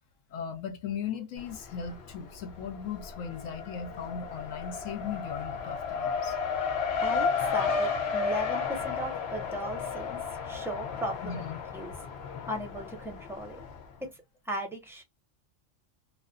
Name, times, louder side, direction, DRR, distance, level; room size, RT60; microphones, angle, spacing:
voice 1, 0.3-6.4 11.2-11.6, left 7 dB, 75° left, 1.1 m, -38 dB
Race car auto racing, 1.4-2.1 2.4-13.8, left 5 dB, 60° left, 0.9 m, -33 dB
voice 2, 7.0-11.4 11.7-12.0 12.5-13.6 14.0-14.1 14.5-15.0, equal, 5° right, 0.4 m, -37 dB
2.4 x 2.3 x 2.4 m
omnidirectional pair, 1.4 m